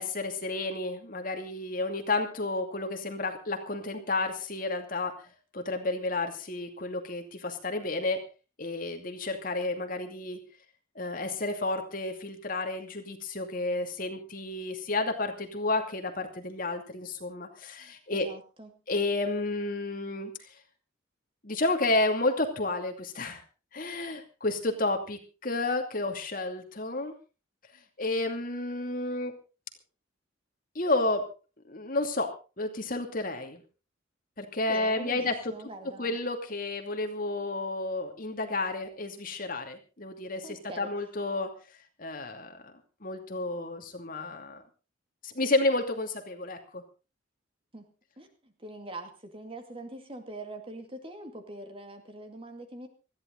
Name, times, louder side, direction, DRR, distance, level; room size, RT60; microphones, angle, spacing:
voice 1, 0.0-8.2 8.6-10.4 10.9-18.3 18.9-20.6 21.4-23.4 23.7-27.1 28.0-29.3 30.7-31.2 31.7-33.6 34.4-35.5 36.0-41.5 42.0-42.7 43.0-44.6 45.2-46.8, left 2 dB, 45° left, 5 dB, 2.6 m, -31 dB
voice 2, 18.1-18.7 34.7-36.2 40.4-40.9 47.7-47.8 48.2-52.9, right 1 dB, 30° right, 6 dB, 2.3 m, -43 dB
20.0 x 14.5 x 4.0 m, 0.33 s
head